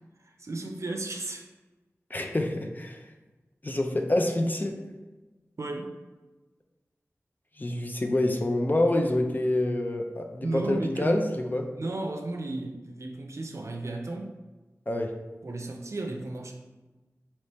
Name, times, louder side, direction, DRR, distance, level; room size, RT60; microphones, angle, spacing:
voice 1, 0.4-1.5 5.6-5.9 10.4-11.2 11.7-14.3 15.4-16.5, right 2 dB, 65° right, 3 dB, 0.5 m, -33 dB
voice 2, 2.1-3.0 3.6-4.7 7.6-11.6 14.9-15.1, left 1 dB, 35° left, 3 dB, 0.5 m, -27 dB
4.2 x 2.9 x 3.3 m, 1.2 s
wide cardioid pair, 45°, 5 cm